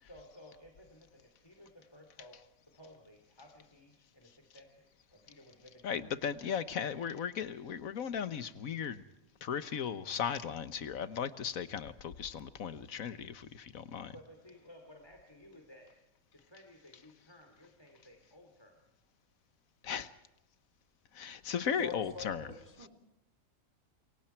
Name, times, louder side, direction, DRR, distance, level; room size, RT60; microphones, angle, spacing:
voice 1, 0.0-2.4 2.7-6.1 6.4-6.6 14.1-15.9 16.3-18.8, left 1 dB, 20° left, 3 dB, 2.9 m, -56 dB
voice 2, 5.8-9.0 9.4-14.1 19.8-20.1 21.1-22.5 22.8-22.9, left 7 dB, 85° left, 13 dB, 1.5 m, -36 dB
voice 3, 21.8-22.9, left 4 dB, 30° right, 4 dB, 3.2 m, -44 dB
27.5 x 23.5 x 4.5 m, 0.86 s
omnidirectional pair, 1.4 m